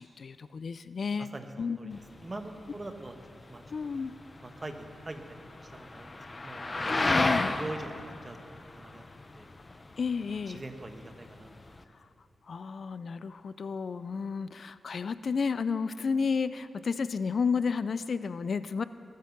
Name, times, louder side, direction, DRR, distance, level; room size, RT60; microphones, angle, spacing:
voice 1, 0.0-1.3 1.6-2.0 3.7-4.1 6.8-7.6 10.0-10.6 11.9-12.1 12.4-18.8, left 5 dB, 60° left, 14 dB, 0.4 m, -32 dB
voice 2, 1.2-1.9 2.2-3.1 3.5-3.9 4.4-6.6 7.2-9.0 9.3-9.5 10.5-11.5, right 2 dB, 25° right, 6 dB, 1.3 m, -43 dB
sound 1, 1.9-11.8, left 2 dB, 30° left, 0.7 m, -34 dB
20.5 x 9.5 x 5.9 m, 2.7 s
wide cardioid pair, 100°, 0 cm